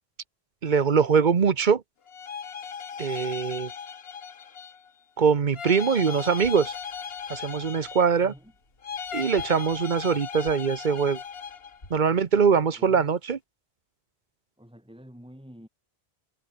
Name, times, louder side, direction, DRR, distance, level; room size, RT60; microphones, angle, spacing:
voice 1, 0.6-1.8 3.0-3.7 5.2-6.7 7.3-8.3 9.1-11.2 11.9-13.4, right 6 dB, 50° right, 1.1 m, -22 dB
sound 1, 2.1-4.9 5.5-8.3 8.8-11.8, left 7 dB, 70° left, 1.3 m, -37 dB
sound 2, 6.4-12.0, left 1 dB, 90° left, 7.3 m, -55 dB
voice 2, 8.2-8.5 12.6-13.2 14.6-15.7, equal, 5° right, 6.2 m, -48 dB
omnidirectional pair, 1.1 m